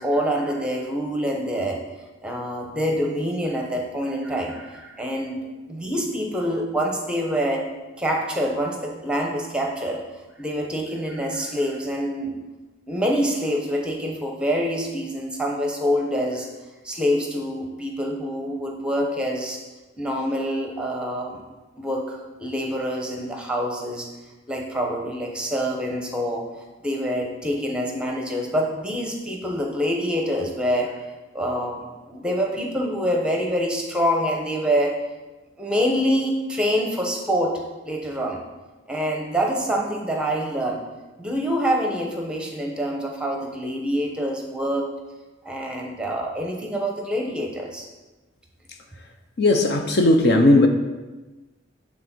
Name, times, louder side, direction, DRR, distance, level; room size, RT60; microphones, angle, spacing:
voice 1, 0.0-1.8 2.2-5.4 5.7-7.6 8.0-10.0 10.4-12.3 12.9-16.5 16.8-19.6 20.0-21.4 21.8-24.1 24.5-26.4 26.8-30.9 31.3-35.0 35.6-37.6 37.8-38.4 38.9-40.8 41.2-44.9 45.4-47.9, equal, 5° right, 1 dB, 1.0 m, -26 dB
voice 2, 49.4-50.7, left 2 dB, 55° left, 5 dB, 0.6 m, -16 dB
9.5 x 3.9 x 6.0 m, 1.2 s
head